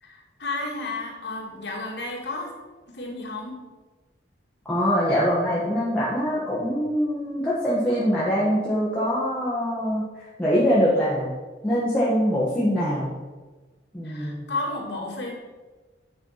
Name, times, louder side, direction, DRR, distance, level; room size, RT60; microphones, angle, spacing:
voice 1, 0.0-2.5 2.9-3.6 14.0-15.3, left 2 dB, 65° left, -2 dB, 2.4 m, -32 dB
voice 2, 4.6-10.0 10.4-11.3 11.6-13.1 13.9-14.5, equal, 5° left, -9 dB, 1.7 m, -23 dB
9.3 x 5.1 x 5.8 m, 1.3 s
head